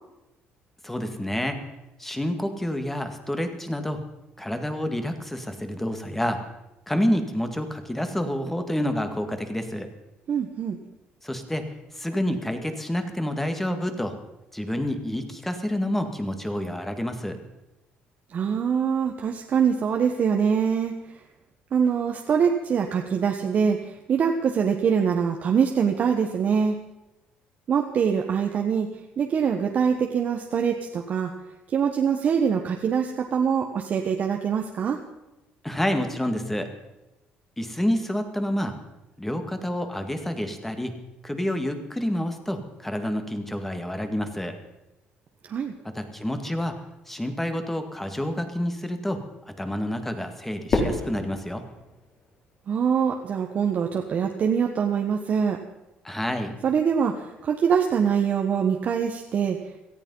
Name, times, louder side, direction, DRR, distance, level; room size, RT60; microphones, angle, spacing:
voice 1, 0.8-1.6 2.0-4.0 4.4-6.4 6.9-9.9 11.2-14.1 14.5-17.4 35.6-36.7 37.6-38.8 39.2-41.0 41.2-44.6 45.9-46.8 47.1-49.2 49.5-51.6 56.0-56.5, equal, 5° left, 7 dB, 2.0 m, -28 dB
voice 2, 10.3-10.8 18.3-21.0 21.7-26.8 27.7-31.3 31.7-35.0 45.4-45.7 52.7-55.6 56.6-59.6, right 7 dB, 45° right, 2 dB, 1.4 m, -24 dB
Fireworks, 50.7-53.0, left 2 dB, 45° left, 4.5 m, -29 dB
17.5 x 14.0 x 5.6 m, 0.97 s
cardioid pair, 120°, 4 cm